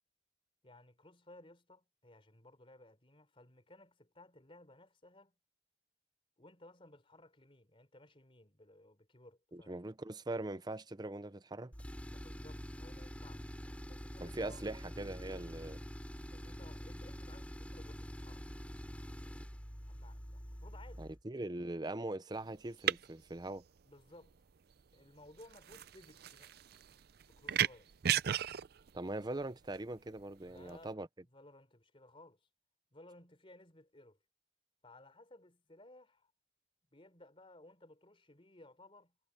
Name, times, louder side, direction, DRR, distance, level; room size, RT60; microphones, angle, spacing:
voice 1, 0.6-5.3 6.4-9.8 12.1-13.5 13.9-14.6 16.3-18.4 19.8-21.1 23.9-24.4 24.9-26.6 27.3-27.9 30.4-30.9 31.2-32.4 32.9-34.2 34.8-36.3 36.9-39.1, left 1 dB, 30° left, 4.1 m, -59 dB
voice 2, 9.5-11.7 14.2-15.8 21.0-23.6 28.9-31.1, right 2 dB, 25° right, 0.7 m, -41 dB
Tools, 11.7-21.2, equal, 5° left, 3.7 m, -46 dB
sound 1, 22.3-30.8, right 10 dB, 55° right, 0.5 m, -37 dB
head